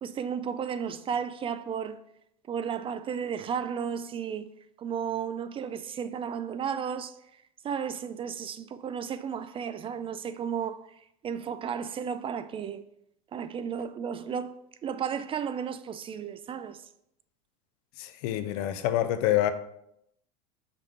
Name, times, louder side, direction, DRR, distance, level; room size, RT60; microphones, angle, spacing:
voice 1, 0.0-2.0 2.5-4.5 4.8-7.2 7.6-12.8 13.3-16.8, right 7 dB, 25° right, 0.4 m, -33 dB
voice 2, 18.0-19.5, left 12 dB, 65° left, 0.7 m, -26 dB
5.8 x 3.5 x 5.7 m
supercardioid pair, 105°, 21 cm